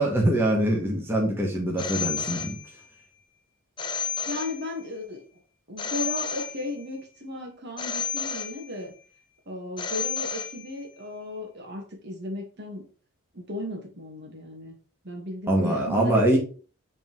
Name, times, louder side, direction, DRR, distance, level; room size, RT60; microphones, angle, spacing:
voice 1, 0.0-2.6 15.5-16.4, right 1 dB, 10° right, -2 dB, 1.4 m, -23 dB
Telephone, 1.8-3.0 3.8-5.0 5.8-7.0 7.8-9.0 9.8-11.0, left 6 dB, 20° left, 0.7 m, -32 dB
voice 2, 4.2-5.2 5.7-8.9 9.5-12.9 13.3-14.8 15.0-16.4, left 1 dB, 50° right, 2 dB, 1.5 m, -35 dB
8.3 x 3.7 x 3.1 m, 0.39 s
head